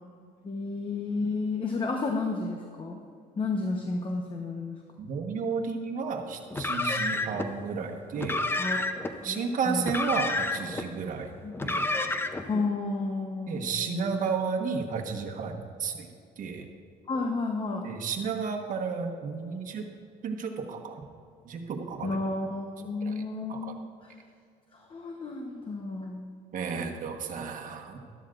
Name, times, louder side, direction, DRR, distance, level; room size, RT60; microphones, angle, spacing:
voice 1, 0.4-3.0 3.4-4.8 8.6-8.8 9.2-9.9 11.4-11.5 12.5-14.1 17.1-17.9 22.0-24.1 24.7-26.3, left 3 dB, 30° left, 2 dB, 1.0 m, -32 dB
voice 2, 5.0-8.4 9.2-11.3 11.6-11.9 13.5-16.1 16.4-16.7 17.8-19.9 20.2-21.0 21.4-22.3 23.0-23.2 23.5-23.8 26.5-28.0, right 5 dB, 50° right, 3 dB, 1.3 m, -32 dB
Car, 6.5-7.5 8.1-9.1 9.8-10.8 11.5-12.5, left 2 dB, 15° left, 0.6 m, -29 dB
12.5 x 12.5 x 2.5 m, 2.3 s
cardioid pair, 110°, 17 cm